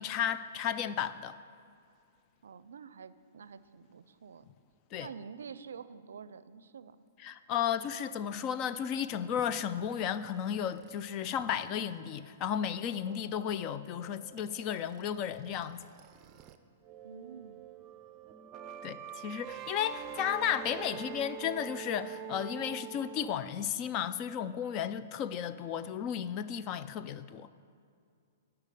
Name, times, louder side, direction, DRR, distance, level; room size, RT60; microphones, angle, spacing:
voice 1, 0.0-1.4 4.9-5.1 7.2-15.8 18.8-27.5, left 9 dB, 35° left, 13 dB, 0.4 m, -34 dB
voice 2, 2.4-4.5 5.0-6.9 17.0-17.7 21.0-21.1, right 6 dB, 85° right, 15 dB, 0.4 m, -48 dB
sound 1, 9.4-16.6 16.8-23.3, right 8 dB, 30° right, 0.6 m, -47 dB
12.0 x 5.7 x 6.8 m, 2.4 s
hypercardioid pair, 135°, 0 cm